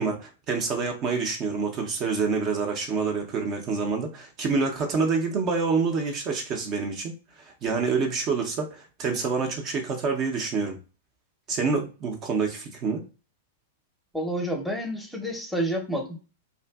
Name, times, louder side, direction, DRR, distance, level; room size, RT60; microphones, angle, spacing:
voice 1, 0.0-10.8 11.5-13.0, right 4 dB, 40° right, 0.5 m, -27 dB
voice 2, 14.1-16.2, equal, ahead, 0.7 m, -29 dB
2.5 x 2.5 x 2.2 m
hypercardioid pair, 105°, 0 cm